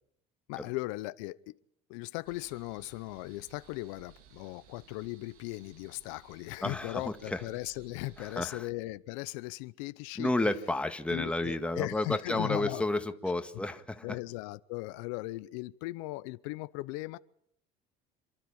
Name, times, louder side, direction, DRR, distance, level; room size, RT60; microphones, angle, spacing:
voice 1, 0.5-1.5 1.9-10.3 11.1-12.9 14.0-17.2, left 21 dB, 90° left, 0.8 m, -38 dB
sound 1, 2.2-8.5, right 10 dB, 65° right, 2.6 m, -59 dB
voice 2, 6.6-7.4 8.2-8.7 10.2-14.1, left 2 dB, 5° left, 1.9 m, -31 dB
28.0 x 12.5 x 8.8 m
cardioid pair, 115°, 16 cm